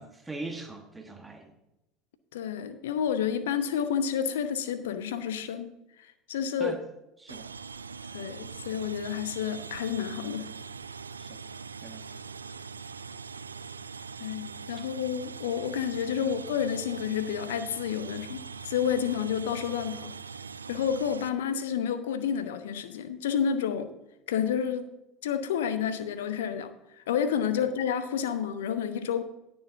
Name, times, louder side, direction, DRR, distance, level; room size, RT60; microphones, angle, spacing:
voice 1, 0.0-1.5 6.6-6.8 7.2-7.5 11.2-11.4 11.8-12.0 16.2-16.3 27.5-27.6, right 3 dB, 10° right, 4 dB, 1.2 m, -40 dB
voice 2, 2.3-5.7 6.3-6.8 8.1-10.5 14.2-20.1 20.7-23.9 24.3-24.9 25.2-26.7 27.1-29.2, left 8 dB, 65° left, 11 dB, 0.7 m, -30 dB
sound 1, 7.3-21.3, right 5 dB, 80° right, 0.3 m, -42 dB
19.0 x 7.0 x 2.6 m, 0.94 s
figure-of-eight pair, 70°, 0 cm